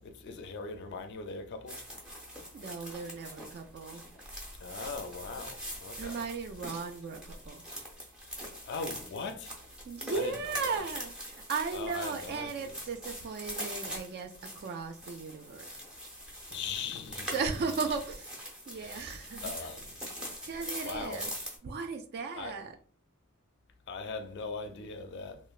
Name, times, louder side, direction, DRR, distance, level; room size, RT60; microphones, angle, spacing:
voice 1, 0.0-1.8 4.6-6.2 8.7-9.6 10.1-10.3 10.6-10.8 11.7-12.7 16.5-17.4 19.4-19.8 20.8-21.2 22.4-22.5 23.9-25.4, left 4 dB, 55° left, 0.4 m, -40 dB
sound 1, 1.7-21.6, equal, 5° right, 0.6 m, -43 dB
voice 2, 2.5-4.0 6.0-7.6 9.8-15.8 17.3-19.5 20.4-21.3 21.6-22.7, right 5 dB, 50° right, 0.3 m, -36 dB
3.0 x 2.0 x 2.4 m
head